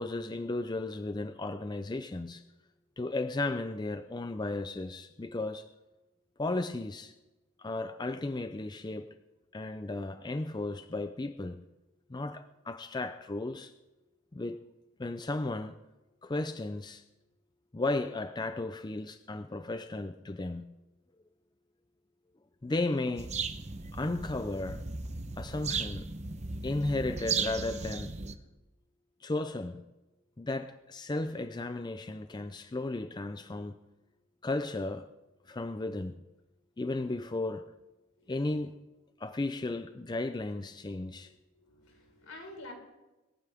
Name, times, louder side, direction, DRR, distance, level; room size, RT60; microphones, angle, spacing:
voice 1, 0.0-2.4 3.0-5.7 6.4-7.1 7.6-9.2 9.5-11.6 12.1-13.7 14.3-14.6 15.0-15.8 16.2-17.0 17.7-20.7 22.6-23.3 23.9-24.8 25.4-26.1 26.6-28.1 29.2-29.8 30.4-33.8 34.4-35.1 35.5-36.1 36.8-37.7 38.3-38.8 39.2-41.3, left 2 dB, 20° left, 0.4 m, -34 dB
sound 1, 23.2-28.4, right 5 dB, 30° right, 0.8 m, -36 dB
voice 2, 41.1-42.7, left 2 dB, 75° left, 4.5 m, -49 dB
21.0 x 15.0 x 3.5 m
head